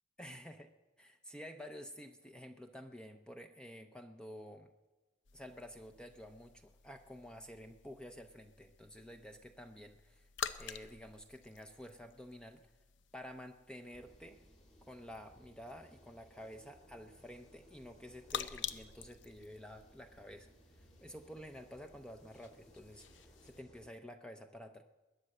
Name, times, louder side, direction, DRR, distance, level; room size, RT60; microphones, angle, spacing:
voice 1, 0.2-0.7 1.0-4.7 5.3-10.3 10.6-12.6 13.1-14.4 14.8-24.8, equal, 5° left, 6 dB, 0.6 m, -51 dB
sound 1, 5.2-23.6, left 8 dB, 85° left, 0.7 m, -50 dB
sound 2, 13.9-23.9, equal, 35° left, 2.6 m, -63 dB
21.5 x 9.7 x 6.6 m, 1.1 s
head